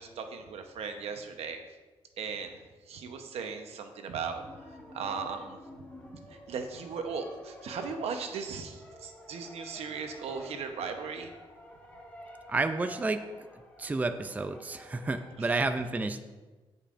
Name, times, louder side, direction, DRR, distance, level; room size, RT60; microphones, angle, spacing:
voice 1, 0.0-1.6 2.2-2.5 2.9-4.4 4.9-5.6 6.1-11.3 15.4-15.9, right 5 dB, 80° right, 5 dB, 0.9 m, -37 dB
sound 1, 4.3-15.3, left 1 dB, 15° left, 1.5 m, -50 dB
voice 2, 12.5-13.2 13.8-16.2, right 3 dB, 15° right, 8 dB, 0.4 m, -30 dB
15.5 x 5.5 x 2.5 m, 1.3 s
cardioid pair, 120°, 10 cm